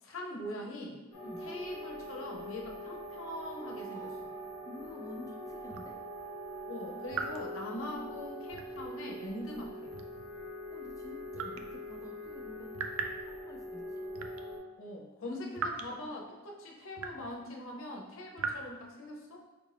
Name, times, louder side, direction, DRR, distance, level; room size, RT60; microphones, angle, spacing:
voice 1, 0.0-1.0 1.4-4.1 6.7-9.9 14.8-19.4, left 1 dB, 70° left, 0 dB, 0.7 m, -42 dB
sound 1, 1.1-14.6, equal, 35° left, 1.0 m, -43 dB
voice 2, 3.9-4.2 4.7-6.0 10.7-12.7 13.0-14.0, left 1 dB, 15° left, 1 dB, 0.4 m, -49 dB
sound 2, 5.7-5.9 7.1-7.5 8.5-8.9 9.9-10.3 11.3-11.7 12.7-13.2 14.1-14.4 15.6-15.9 17.0-17.3 18.4-18.5, right 5 dB, 90° right, 0.4 m, -38 dB
4.8 x 2.5 x 3.3 m, 1.2 s
head